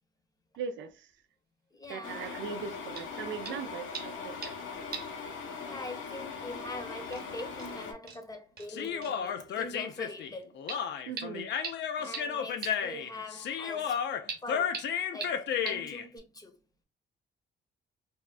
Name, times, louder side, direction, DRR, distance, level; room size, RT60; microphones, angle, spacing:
voice 1, 0.6-1.1 1.9-4.5 11.1-11.5, right 7 dB, 75° right, 0.4 m, -39 dB
voice 2, 1.7-2.2 5.6-10.6 12.0-14.0 14.4-14.9 15.1-16.6, left 2 dB, 20° left, 0.8 m, -43 dB
sound 1, 2.0-7.9, left 5 dB, 85° left, 0.8 m, -40 dB
sound 2, 3.0-3.1 3.5-3.6 3.9-4.6 4.9-5.2 5.5-5.6 6.6-6.7 7.1-7.2 7.6-7.7 8.1-8.2 8.6-8.7 9.0-9.1 10.7-10.8 11.2-11.3 11.6-11.7 12.1-12.2 12.6-12.7 14.3-14.4 14.7-14.8 15.2-15.3 15.7-15.8, right 5 dB, 50° right, 0.8 m, -39 dB
Human voice, 8.7-16.0, left 8 dB, 60° left, 0.4 m, -33 dB
3.4 x 2.3 x 2.4 m
cardioid pair, 90°, 20 cm